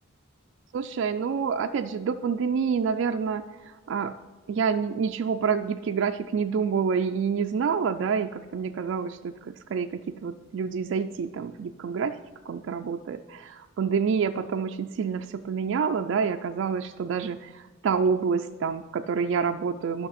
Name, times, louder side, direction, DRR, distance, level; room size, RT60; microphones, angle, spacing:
voice 1, 0.7-4.2 4.5-12.2 12.5-20.1, right 6 dB, 65° right, 6 dB, 0.3 m, -28 dB
12.5 x 5.9 x 4.1 m, 1.2 s
head